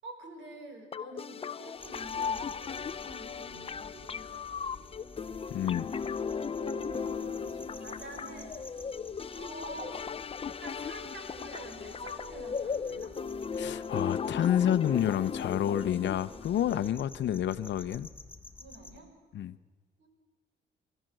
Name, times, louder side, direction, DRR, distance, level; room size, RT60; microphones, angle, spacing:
voice 1, 0.0-5.1 6.6-8.6 9.3-10.1 10.5-13.2 16.9-17.0 18.6-19.1 20.0-20.1, right 2 dB, 70° right, 4 dB, 5.6 m, -48 dB
sound 1, 0.9-16.9, left 6 dB, 30° left, 0.6 m, -37 dB
sound 2, 1.8-19.0, left 2 dB, 10° left, 2.1 m, -52 dB
voice 2, 5.5-5.9 13.5-18.1 19.3-19.6, left 10 dB, 65° left, 14 dB, 0.8 m, -29 dB
29.0 x 13.0 x 7.7 m, 1.4 s
cardioid pair, 90°, 20 cm